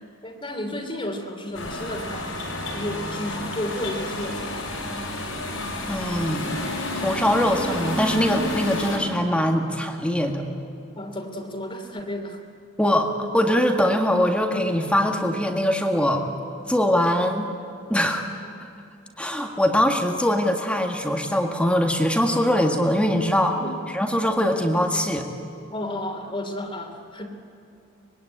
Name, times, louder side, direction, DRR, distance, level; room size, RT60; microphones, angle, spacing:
voice 1, 0.0-2.4 2.7-4.6 9.7-9.8 10.9-12.4 23.5-23.7 25.7-27.3, left 1 dB, 25° left, 4 dB, 2.9 m, -32 dB
sound 1, 1.5-9.0, left 1 dB, 90° left, 6.8 m, -30 dB
voice 2, 5.9-6.4 7.0-10.4 12.8-16.2 16.7-17.5 17.9-18.2 19.2-23.6 23.9-25.3, left 1 dB, 5° left, 3 dB, 1.9 m, -22 dB
25.0 x 21.0 x 9.9 m, 2.7 s
head